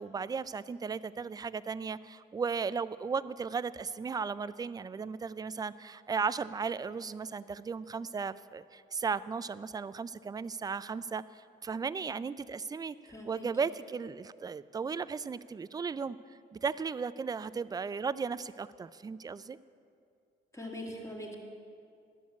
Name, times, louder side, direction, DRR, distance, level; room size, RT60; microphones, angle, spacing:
voice 1, 0.0-13.0 13.3-16.2 16.5-19.6, right 5 dB, 20° right, 16 dB, 0.3 m, -36 dB
voice 2, 13.1-13.5 20.5-21.3, left 1 dB, 15° left, 0 dB, 2.3 m, -42 dB
11.5 x 7.1 x 8.2 m, 2.4 s
cardioid pair, 90°, 20 cm